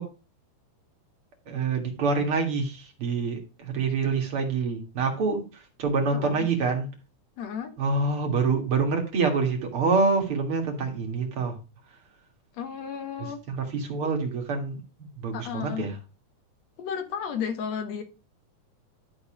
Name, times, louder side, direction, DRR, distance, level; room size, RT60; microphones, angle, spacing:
voice 1, 1.5-6.9 7.8-11.6 13.2-16.0, right 4 dB, 45° right, 3 dB, 2.4 m, -26 dB
voice 2, 6.1-6.5 7.4-7.7 12.5-13.4 15.3-15.9 16.8-18.0, left 7 dB, 60° left, 7 dB, 2.3 m, -33 dB
12.0 x 4.0 x 5.0 m, 0.32 s
omnidirectional pair, 3.8 m